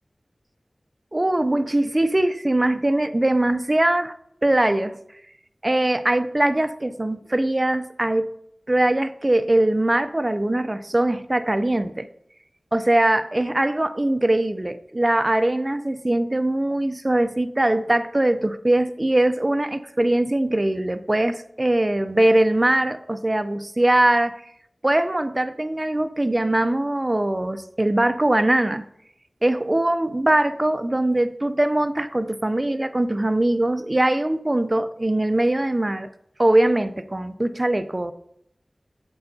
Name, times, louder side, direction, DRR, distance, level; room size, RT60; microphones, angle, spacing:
voice 1, 1.1-4.1 4.4-5.0 5.6-8.3 8.7-12.1 12.7-24.4 24.8-28.8 29.4-36.1 36.4-38.1, right 1 dB, 35° right, 11 dB, 0.4 m, -21 dB
7.7 x 6.7 x 2.7 m, 0.74 s
wide cardioid pair, 40°, 0 cm